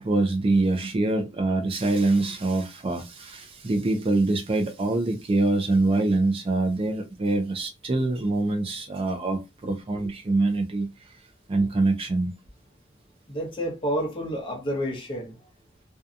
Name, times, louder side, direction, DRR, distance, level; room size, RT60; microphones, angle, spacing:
voice 1, 0.0-10.9 11.5-12.3, right 2 dB, 30° right, 0.4 m, -24 dB
voice 2, 13.3-15.4, equal, 25° left, 0.8 m, -29 dB
2.6 x 2.2 x 2.5 m
head